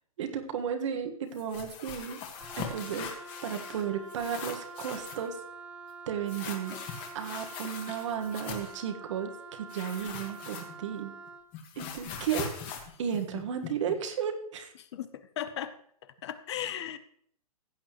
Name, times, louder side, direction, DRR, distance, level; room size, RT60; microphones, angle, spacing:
voice 1, 0.2-2.2 2.6-3.1 3.4-5.4 6.1-6.8 7.1-11.1 11.8-12.5 13.0-14.7, right 8 dB, 50° right, 6 dB, 1.6 m, -34 dB
sound 1, 1.3-3.8 4.1-5.3 6.3-8.8 9.7-11.0 11.3-13.9, left 6 dB, 25° left, 1.7 m, -41 dB
Wind instrument woodwind instrument, 2.4-11.5, right 3 dB, 5° right, 0.5 m, -46 dB
voice 2, 14.9-15.7 16.2-17.0, left 10 dB, 45° left, 13 dB, 0.8 m, -36 dB
16.0 x 8.8 x 3.1 m, 0.63 s
hypercardioid pair, 145°, 19 cm